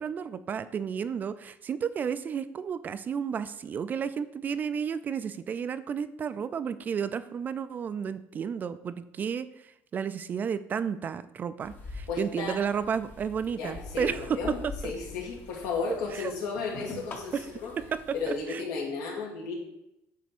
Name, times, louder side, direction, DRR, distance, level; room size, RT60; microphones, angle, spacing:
voice 1, 0.0-14.6 16.1-16.3 17.3-17.4 17.9-18.0 18.3-18.6, right 7 dB, 30° right, 13 dB, 0.3 m, -32 dB
sound 1, 11.6-18.4, left 3 dB, 35° left, 0.9 m, -44 dB
voice 2, 12.1-12.6 13.5-14.6 14.8-17.7 18.1-19.5, left 4 dB, 80° left, -1 dB, 2.4 m, -34 dB
9.3 x 3.4 x 6.0 m, 0.86 s
cardioid pair, 140°, 6 cm